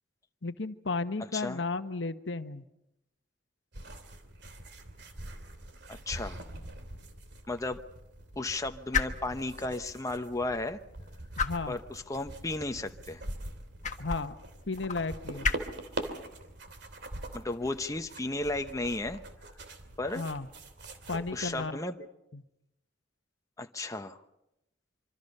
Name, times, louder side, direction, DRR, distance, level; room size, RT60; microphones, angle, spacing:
voice 1, 0.4-2.6 11.4-11.8 14.0-14.3 14.7-15.6 20.1-20.5 21.1-22.1 22.3-22.4, left 3 dB, 70° left, 10 dB, 1.1 m, -34 dB
sound 1, 3.7-21.7, right 1 dB, 65° right, 2.9 m, -44 dB
sound 2, 5.9-19.5, left 5 dB, 40° left, 1.4 m, -39 dB
voice 2, 5.9-6.4 7.5-7.8 8.4-10.8 11.7-13.2 17.3-19.2 20.0-20.3 21.3-22.0 23.6-24.2, left 2 dB, 15° left, 6 dB, 1.0 m, -34 dB
25.5 x 25.5 x 5.5 m, 0.85 s
head